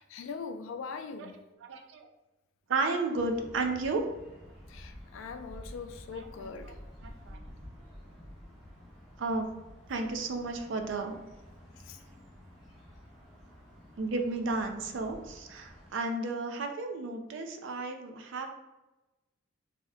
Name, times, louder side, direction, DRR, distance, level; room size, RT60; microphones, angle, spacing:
voice 1, 0.0-1.4 4.7-6.8 11.8-12.0, left 5 dB, 75° left, 8 dB, 0.3 m, -41 dB
voice 2, 1.7-2.1 2.7-4.1 6.4-6.5 7.0-7.4 9.2-9.5 9.9-11.2 14.0-18.5, right 3 dB, 65° right, 4 dB, 0.4 m, -33 dB
sound 1, 3.1-15.9, equal, ahead, 0.9 m, -51 dB
2.8 x 2.1 x 3.6 m, 1.0 s
head